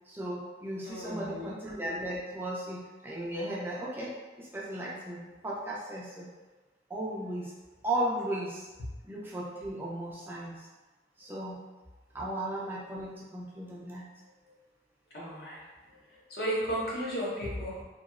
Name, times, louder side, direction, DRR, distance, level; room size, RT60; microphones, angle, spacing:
voice 1, 0.1-6.2 6.9-7.5 7.8-8.7 9.1-10.7 11.2-11.6 12.1-14.1, right 1 dB, 10° right, -6 dB, 0.3 m, -36 dB
voice 2, 0.8-1.5 8.8-8.9 15.1-15.6 15.9-17.8, equal, 60° left, -6 dB, 0.9 m, -34 dB
2.9 x 2.7 x 2.4 m, 1.2 s
head